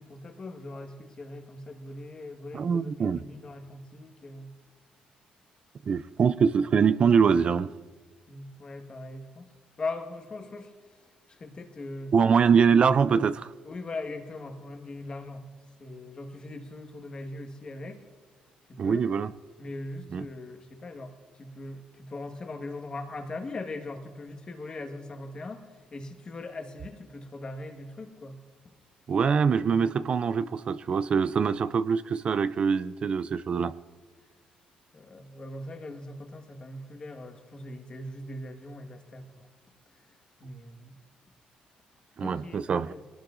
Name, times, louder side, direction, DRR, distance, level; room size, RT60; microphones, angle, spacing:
voice 1, 0.0-4.5 8.3-9.5 9.8-11.0 11.3-12.1 13.6-15.5 15.8-18.1 18.7-19.1 19.6-28.4 34.9-39.5 40.1-40.9 42.2-42.6 42.9-43.0, left 2 dB, 35° left, 4 dB, 1.5 m, -40 dB
voice 2, 2.5-3.2 5.9-7.7 12.1-13.5 18.8-19.3 20.1-20.2 29.1-33.7 42.2-42.9, right 6 dB, 45° right, 14 dB, 0.4 m, -24 dB
22.0 x 18.5 x 2.5 m, 1.4 s
cardioid pair, 105°, 3 cm